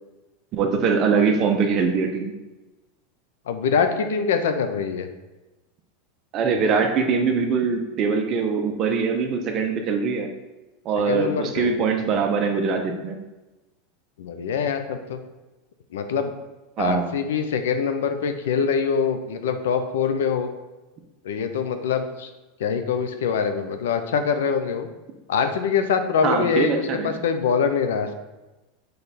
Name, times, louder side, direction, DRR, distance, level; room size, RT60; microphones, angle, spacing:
voice 1, 0.5-2.3 6.3-10.3 10.8-13.2 16.8-17.2 26.2-27.2, right 5 dB, 40° right, 4 dB, 0.9 m, -22 dB
voice 2, 3.5-5.1 11.0-11.7 14.2-15.2 15.9-16.3 16.8-20.5 21.2-22.3 22.6-24.9 25.3-28.1, left 6 dB, 90° left, 8 dB, 0.7 m, -24 dB
6.7 x 3.4 x 4.2 m, 1.1 s
supercardioid pair, 135°, 0 cm